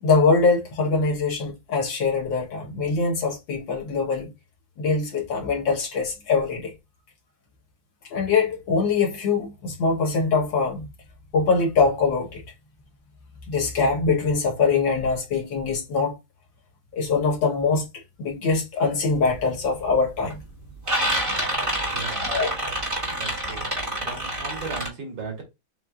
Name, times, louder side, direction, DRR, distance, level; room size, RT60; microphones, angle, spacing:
voice 1, 0.0-4.3 4.8-6.7 8.1-10.9 11.3-12.4 13.5-16.2 16.9-17.9 18.2-20.4 22.2-22.5, left 4 dB, 80° left, 2.0 m, -23 dB
sound 1, 19.1-19.4 19.8-20.3 20.6-24.9, right 1 dB, 20° right, 1.4 m, -27 dB
voice 2, 21.9-22.4 23.2-23.6 24.0-25.4, right 4 dB, 85° right, 2.4 m, -36 dB
7.4 x 2.6 x 2.4 m
omnidirectional pair, 2.0 m